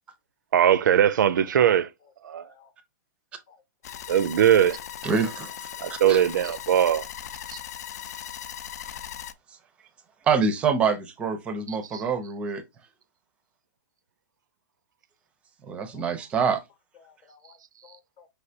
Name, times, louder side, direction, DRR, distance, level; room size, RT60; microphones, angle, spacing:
voice 1, 0.5-1.9 2.2-2.5 4.1-4.8 5.8-7.1 11.9-12.0, right 9 dB, 85° right, 0.5 m, -20 dB
voice 2, 1.4-1.7 2.4-2.7 3.5-3.6 3.9-4.0 15.8-16.1 16.9-18.3, left 6 dB, 30° left, 0.8 m, -56 dB
sound 1, 3.8-9.3, left 10 dB, 60° left, 0.5 m, -38 dB
voice 3, 5.0-5.5 5.9-6.2 10.3-12.6 15.7-16.6, right 5 dB, 10° right, 0.4 m, -25 dB
5.4 x 3.3 x 2.7 m
hypercardioid pair, 170°, 10 cm